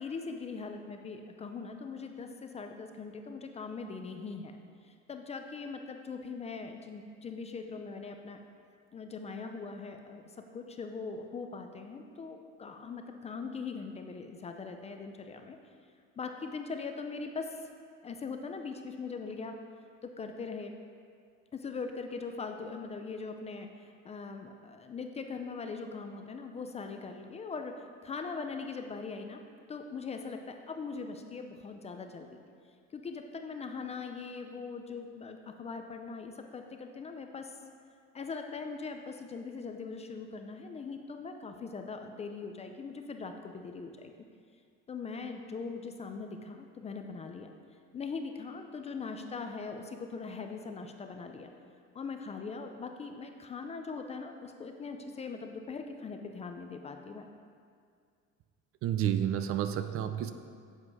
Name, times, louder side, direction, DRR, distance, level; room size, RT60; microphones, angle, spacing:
voice 1, 0.0-4.6 4.8-8.4 8.9-15.6 16.2-17.7 18.0-19.5 20.0-20.7 21.5-29.4 29.7-32.4 32.9-37.6 38.1-44.1 44.9-47.5 47.9-51.5 51.9-57.3, left 4 dB, 20° left, 5 dB, 0.4 m, -41 dB
voice 2, 58.8-60.3, right 10 dB, 50° right, 9 dB, 0.5 m, -30 dB
7.9 x 7.6 x 4.7 m, 2.2 s
cardioid pair, 160°, 30 cm